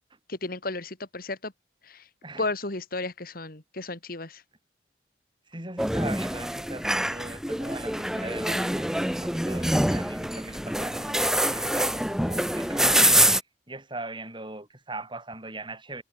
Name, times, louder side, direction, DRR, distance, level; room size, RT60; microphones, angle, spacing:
voice 1, 0.3-1.5 1.8-2.1 2.4-4.4, left 2 dB, 55° left, 2.5 m, -33 dB
voice 2, 5.5-13.4 13.7-16.0, right 2 dB, 25° right, 6.1 m, -40 dB
sound 1, 5.8-13.4, right 1 dB, 5° right, 1.4 m, -25 dB
head